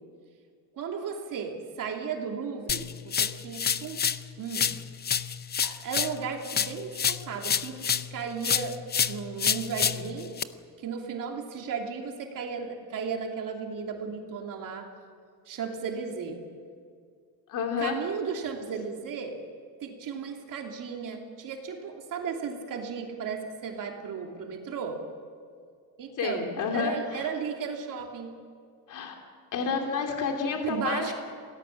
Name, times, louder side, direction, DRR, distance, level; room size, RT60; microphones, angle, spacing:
voice 1, 0.7-4.1 4.4-4.7 5.6-8.8 9.1-10.3 10.8-14.9 15.5-16.4 17.8-19.4 19.8-25.0 26.0-28.4 30.6-31.1, right 6 dB, 60° right, 1 dB, 3.0 m, -35 dB
sound 1, 2.7-4.2 4.5-8.1 8.4-10.4, left 7 dB, 25° left, 0.6 m, -28 dB
voice 2, 17.5-18.0 26.2-27.3 28.9-29.2 29.5-31.1, left 5 dB, 55° left, 2 dB, 3.1 m, -30 dB
27.0 x 18.5 x 7.5 m, 2.2 s
cardioid pair, 165°, 37 cm